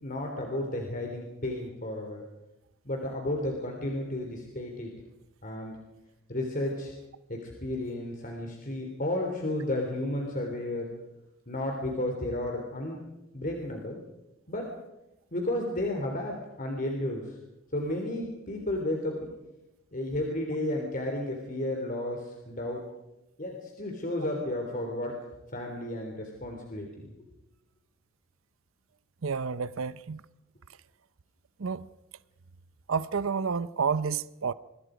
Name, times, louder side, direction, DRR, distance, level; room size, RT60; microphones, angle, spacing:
voice 1, 0.0-2.2 2.9-4.9 5.4-5.8 6.3-6.9 7.3-10.9 11.5-13.0 13.3-14.0 14.5-14.7 15.3-17.4 17.7-19.3 19.9-22.8 23.4-25.2 25.5-27.1, left 1 dB, 40° left, 3.4 m, -32 dB
voice 2, 29.2-30.2 31.6-31.9 32.9-34.5, right 5 dB, 85° right, 0.7 m, -30 dB
27.5 x 23.0 x 5.1 m
head